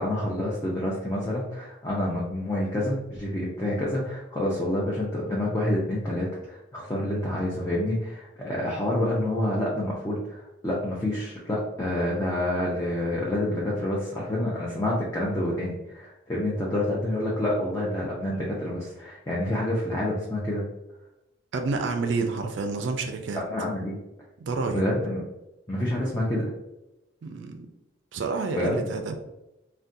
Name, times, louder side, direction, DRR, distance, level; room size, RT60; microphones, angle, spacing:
voice 1, 0.0-20.6 23.3-24.0 24.7-25.2 25.7-26.5 28.5-28.9, left 1 dB, 15° left, -5 dB, 0.5 m, -28 dB
voice 2, 21.5-23.4 24.4-24.8 27.2-27.7 28.1-29.2, right 3 dB, 65° right, 5 dB, 0.4 m, -29 dB
4.0 x 2.2 x 2.5 m, 0.93 s
head